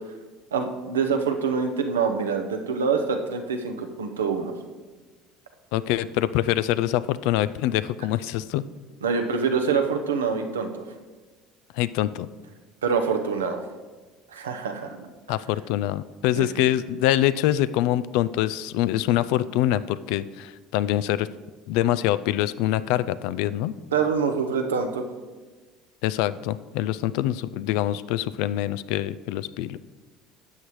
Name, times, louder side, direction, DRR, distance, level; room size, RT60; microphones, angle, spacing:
voice 1, 0.5-4.5 9.0-10.8 12.8-13.6 14.3-15.1 16.3-16.5 23.9-25.0, right 5 dB, 85° right, 5 dB, 0.8 m, -25 dB
voice 2, 5.7-8.7 11.7-12.3 15.3-21.3 21.7-23.7 26.0-29.8, left 13 dB, 70° left, 15 dB, 0.3 m, -25 dB
13.0 x 8.0 x 3.1 m, 1.3 s
hypercardioid pair, 65°, 0 cm